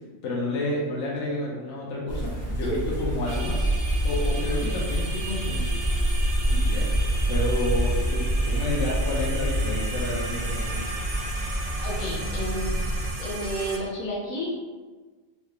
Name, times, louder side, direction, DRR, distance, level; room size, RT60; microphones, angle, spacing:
voice 1, 0.2-5.7 6.5-6.9 7.3-10.8, left 1 dB, 65° left, -4 dB, 0.9 m, -30 dB
sound 1, 2.1-13.1, right 1 dB, 15° left, 0.9 m, -27 dB
voice 2, 2.6-3.0 11.8-12.7 13.2-14.5, equal, 85° left, -5 dB, 1.4 m, -31 dB
sound 2, 3.3-13.8, right 1 dB, 70° right, 1.0 m, -35 dB
3.3 x 3.2 x 2.3 m, 1.4 s
omnidirectional pair, 1.4 m